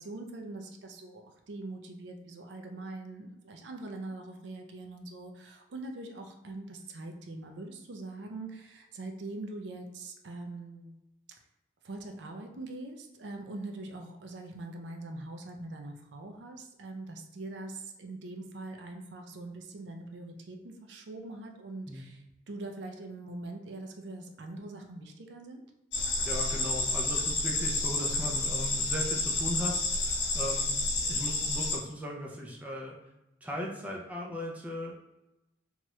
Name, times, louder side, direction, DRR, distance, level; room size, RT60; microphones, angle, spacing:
voice 1, 0.0-10.9 11.8-25.6, right 2 dB, 65° right, 4 dB, 0.4 m, -43 dB
sound 1, 25.9-31.8, left 2 dB, 65° left, 0.7 m, -30 dB
voice 2, 26.2-30.8 31.1-33.0 33.4-34.9, equal, 10° right, -2 dB, 0.4 m, -37 dB
3.0 x 2.3 x 3.0 m, 0.95 s
head